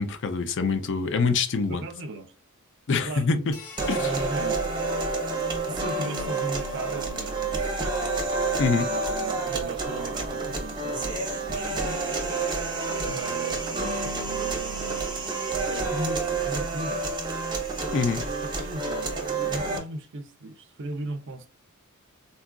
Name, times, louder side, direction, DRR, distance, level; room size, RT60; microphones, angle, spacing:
voice 1, 0.0-1.8 2.9-3.5 3.9-4.1 8.6-8.9 17.9-18.2, left 4 dB, 60° left, 0.5 m, -25 dB
voice 2, 1.7-2.3 3.0-3.5 3.9-5.0 5.7-7.9 8.8-12.4 13.0-15.0 15.6-17.1 17.8-18.1 18.6-21.5, right 2 dB, 55° right, 0.5 m, -37 dB
sound 1, 3.5-6.0, left 5 dB, 75° left, 0.9 m, -48 dB
sound 2, 3.8-19.8, right 3 dB, 20° right, 0.7 m, -29 dB
3.9 x 2.4 x 2.3 m
head